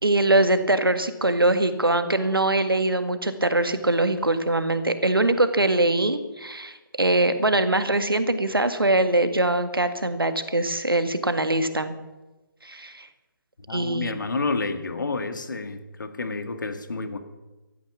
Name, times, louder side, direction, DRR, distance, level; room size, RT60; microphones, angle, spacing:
voice 1, 0.0-11.9 12.6-13.1 13.7-14.1, right 2 dB, 80° right, 10 dB, 1.8 m, -22 dB
voice 2, 13.7-17.2, left 3 dB, 60° left, 9 dB, 2.0 m, -29 dB
15.5 x 13.5 x 7.0 m, 1.1 s
figure-of-eight pair, 145°, 12 cm